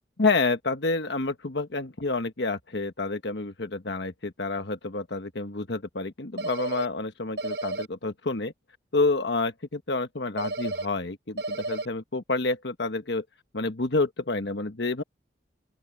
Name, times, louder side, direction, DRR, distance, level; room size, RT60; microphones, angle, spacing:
voice 1, 0.2-8.5 8.9-13.2 13.5-15.0, left 3 dB, 70° left, 1.2 m, -28 dB
sound 1, 6.4-6.9 7.4-7.9 10.4-10.9 11.4-11.9, right 2 dB, 65° right, 7.8 m, -31 dB
open air
head